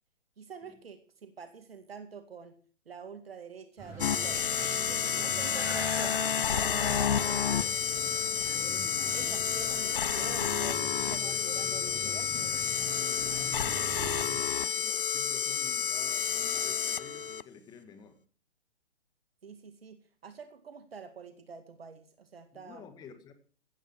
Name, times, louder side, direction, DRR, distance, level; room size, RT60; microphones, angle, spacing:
voice 1, 0.4-2.6 2.9-4.5 4.9-7.4 7.9-8.3 9.1-12.7 19.4-22.9, right 5 dB, 55° right, 2.3 m, -47 dB
sound 1, 3.8-14.4, right 2 dB, 10° right, 7.2 m, -43 dB
sound 2, 4.0-17.4, left 8 dB, 50° left, 0.7 m, -30 dB
voice 2, 12.9-18.2 22.5-23.3, left 6 dB, 10° left, 1.7 m, -50 dB
16.5 x 14.0 x 4.7 m
figure-of-eight pair, 130°, 36 cm